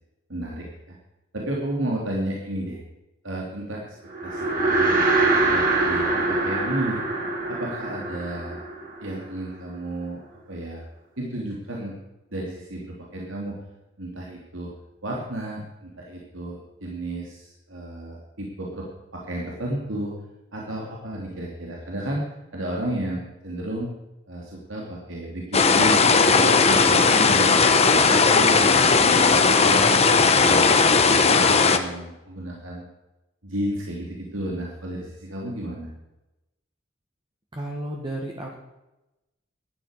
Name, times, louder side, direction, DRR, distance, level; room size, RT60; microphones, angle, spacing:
voice 1, 0.3-1.0 1.3-2.8 3.2-3.9 4.2-7.0 7.5-8.6 9.0-10.2 10.5-10.8 11.2-12.0 12.3-13.6 14.0-14.7 15.0-18.9 19.1-20.1 20.5-22.2 22.5-23.9 24.3-27.6 27.9-29.1 29.6-32.8 33.4-35.9, right 1 dB, 85° right, -2 dB, 3.0 m, -32 dB
sound 1, 4.1-9.6, right 2 dB, 50° right, 3.4 m, -24 dB
sound 2, 25.5-31.8, left 4 dB, 35° left, 1.2 m, -17 dB
voice 2, 37.5-38.6, right 1 dB, 25° right, -1 dB, 1.8 m, -32 dB
12.5 x 11.0 x 6.7 m, 0.97 s
head